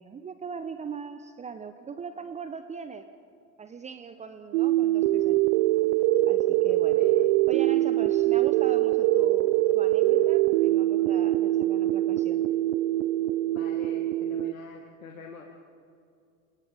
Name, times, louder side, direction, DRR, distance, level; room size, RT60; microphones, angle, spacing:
voice 1, 0.0-3.1 3.6-5.5 6.3-7.0 7.5-12.4, right 6 dB, 15° right, 10 dB, 0.9 m, -40 dB
sound 1, 4.5-14.5, right 16 dB, 55° right, 0.7 m, -23 dB
voice 2, 13.5-15.4, left 5 dB, 80° left, 2 dB, 1.9 m, -45 dB
28.5 x 28.5 x 3.6 m, 2.4 s
figure-of-eight pair, 80°, 40 cm